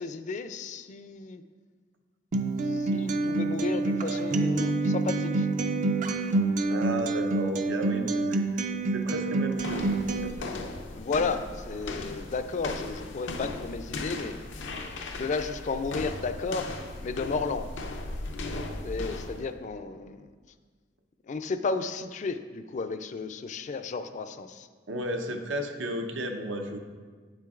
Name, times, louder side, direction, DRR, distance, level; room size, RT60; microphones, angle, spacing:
voice 1, 0.0-1.4 2.7-5.5 5.8-5.9 10.9-14.3 15.2-16.7 17.0-17.7 18.8-20.3 21.3-24.7, left 4 dB, 40° left, 10 dB, 0.3 m, -33 dB
Acoustic guitar, 2.3-10.3, right 3 dB, 45° right, 0.4 m, -27 dB
voice 2, 6.7-8.6 8.9-10.5 24.9-26.8, right 1 dB, 85° right, 4 dB, 0.7 m, -33 dB
sound 1, 9.6-19.5, left 2 dB, 90° left, 0.6 m, -37 dB
8.9 x 7.5 x 2.4 m, 1.5 s
head